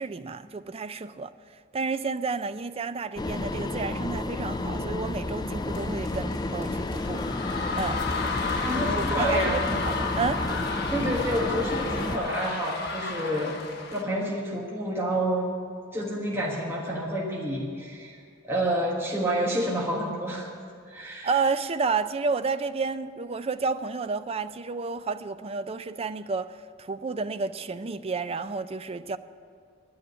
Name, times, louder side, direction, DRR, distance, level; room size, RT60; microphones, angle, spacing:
voice 1, 0.0-1.3 1.7-7.3 7.7-8.0 8.7-10.4 21.2-29.2, right 4 dB, 30° right, 0.4 m, -31 dB
sound 1, 3.2-12.2, left 2 dB, 20° left, 0.5 m, -31 dB
sound 2, 5.7-14.0, left 4 dB, 55° left, 1.3 m, -32 dB
voice 2, 8.6-9.6 10.9-13.6 13.9-15.5 15.9-18.2 18.4-20.5 20.8-21.3, right 1 dB, 15° right, 1.5 m, -28 dB
11.0 x 9.4 x 9.5 m
head